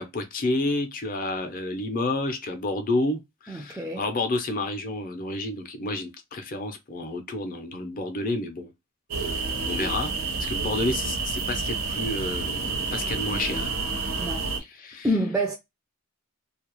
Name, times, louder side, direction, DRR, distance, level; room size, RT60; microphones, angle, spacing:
voice 1, 0.0-8.7 9.3-9.4 9.6-10.1 10.4-13.7 14.8-15.1, left 2 dB, 40° left, 0.5 m, -30 dB
voice 2, 3.5-4.1 14.2-14.5 15.0-15.6, equal, 5° right, 0.3 m, -27 dB
sound 1, 9.1-14.6, right 4 dB, 75° right, 0.7 m, -29 dB
2.3 x 2.0 x 3.0 m
head